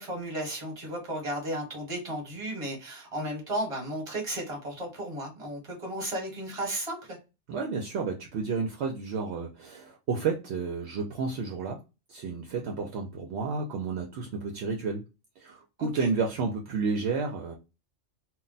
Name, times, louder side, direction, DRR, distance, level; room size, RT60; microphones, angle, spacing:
voice 1, 0.0-7.2 15.8-16.1, right 1 dB, 25° right, 1.1 m, -34 dB
voice 2, 7.5-11.8 12.1-15.0 15.4-17.6, right 4 dB, 70° right, 0.8 m, -31 dB
2.3 x 2.1 x 3.8 m
omnidirectional pair, 1.2 m